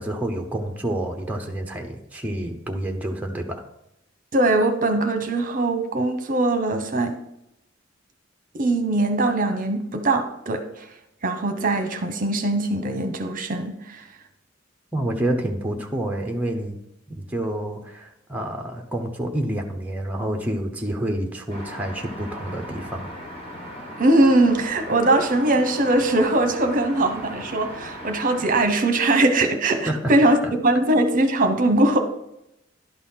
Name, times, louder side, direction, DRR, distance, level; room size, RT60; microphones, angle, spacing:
voice 1, 0.0-3.6 14.9-16.8 17.1-23.1 29.9-30.1, right 1 dB, 10° right, 3 dB, 0.8 m, -28 dB
voice 2, 4.3-7.2 8.5-10.9 11.2-14.0 24.0-32.0, right 2 dB, 45° right, 7 dB, 0.9 m, -21 dB
sound 1, 21.5-28.6, equal, 30° left, 2.7 m, -38 dB
11.5 x 4.1 x 5.6 m, 0.84 s
head